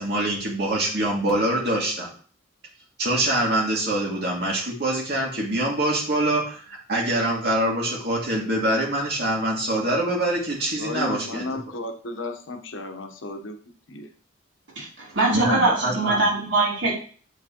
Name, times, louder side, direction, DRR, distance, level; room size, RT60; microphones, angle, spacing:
voice 1, 0.0-2.1 3.0-11.5 15.3-16.3, right 1 dB, 55° right, 2.3 m, -24 dB
voice 2, 10.8-13.6 13.9-14.1, left 2 dB, 90° left, 0.9 m, -33 dB
voice 3, 14.8-16.9, right 2 dB, 75° right, 2.8 m, -22 dB
8.1 x 4.9 x 2.9 m
head